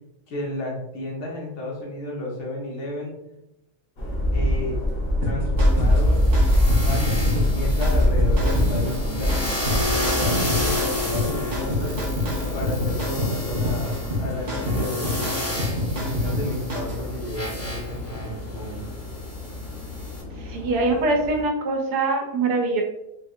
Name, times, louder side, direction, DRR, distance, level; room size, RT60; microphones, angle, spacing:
voice 1, 0.3-3.2 4.3-4.8 5.2-6.2 6.8-9.3 9.6-12.0 12.5-13.9 14.2-15.5 15.9-18.9, left 1 dB, 80° left, -2 dB, 1.5 m, -32 dB
sound 1, 4.0-21.4, left 1 dB, 45° left, 0.8 m, -25 dB
sound 2, 5.2-17.0, left 1 dB, 50° right, 0.5 m, -28 dB
sound 3, 5.6-20.2, left 2 dB, 15° left, 0.5 m, -31 dB
voice 2, 20.4-22.8, right 2 dB, 85° right, 2 dB, 1.3 m, -23 dB
4.1 x 2.7 x 2.4 m, 0.86 s
omnidirectional pair, 1.7 m